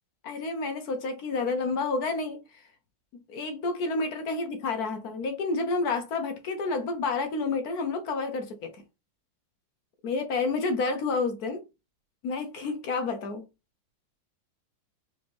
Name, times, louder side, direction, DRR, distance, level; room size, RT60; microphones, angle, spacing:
voice 1, 0.2-2.4 3.3-8.7 10.0-11.6 12.2-13.4, left 3 dB, 65° left, 1.0 m, -29 dB
4.1 x 3.4 x 3.0 m
omnidirectional pair, 2.3 m